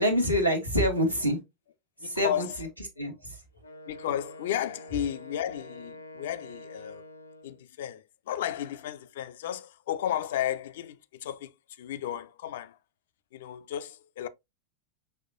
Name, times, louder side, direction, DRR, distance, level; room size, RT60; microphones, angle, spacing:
voice 1, 0.0-1.4 2.0-2.5 3.0-3.4, equal, 90° right, 1.0 m, -26 dB
voice 2, 2.0-2.6 3.9-7.0 7.4-11.5 11.8-12.8 13.3-14.3, left 11 dB, 55° left, 0.4 m, -33 dB
Wind instrument woodwind instrument, 3.6-7.6, left 1 dB, 80° left, 0.7 m, -46 dB
5.5 x 3.1 x 2.4 m
figure-of-eight pair, 90°, 0 cm